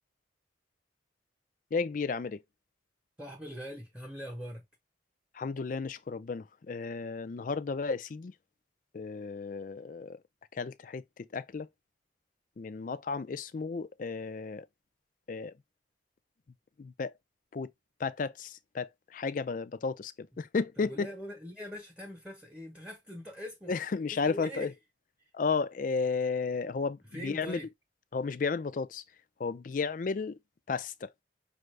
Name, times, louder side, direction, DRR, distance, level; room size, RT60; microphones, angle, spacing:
voice 1, 1.7-2.4 5.3-8.3 8.9-10.2 10.5-11.7 12.6-14.7 15.3-15.5 16.8-17.1 17.5-17.7 18.0-21.1 23.7-24.7 25.3-27.6 28.1-29.0 29.4-30.4 30.7-31.1, left 4 dB, 45° left, 0.4 m, -33 dB
voice 2, 3.2-4.6 20.8-23.7 24.2-24.7 27.1-27.7, equal, 5° right, 0.9 m, -42 dB
5.5 x 2.5 x 3.2 m
head